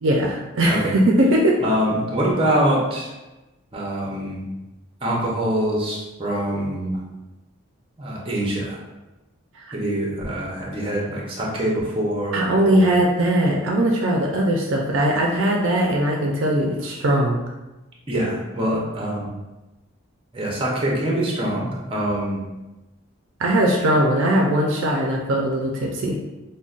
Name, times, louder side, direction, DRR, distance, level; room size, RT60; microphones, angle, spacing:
voice 1, 0.0-1.6 12.3-17.4 23.4-26.2, right 1 dB, 60° right, -1 dB, 0.4 m, -20 dB
voice 2, 0.6-0.9 1.6-3.1 3.7-4.4 5.0-7.0 8.0-8.8 9.7-13.0 18.1-19.3 20.3-22.4, right 1 dB, 25° right, -3 dB, 0.7 m, -24 dB
5.2 x 2.1 x 2.4 m, 1.0 s
head